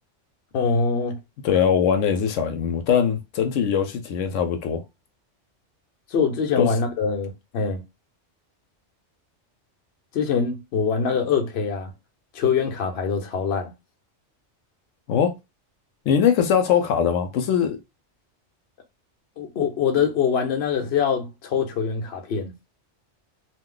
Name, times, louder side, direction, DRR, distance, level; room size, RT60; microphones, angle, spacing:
voice 1, 0.5-1.2 6.1-7.8 10.1-11.9 12.3-13.7 19.4-22.5, left 6 dB, 65° left, 0.9 m, -24 dB
voice 2, 1.4-4.8 6.6-6.7 15.1-15.3 16.1-17.8, left 8 dB, 90° left, 0.9 m, -21 dB
2.5 x 2.2 x 3.7 m
omnidirectional pair, 1.2 m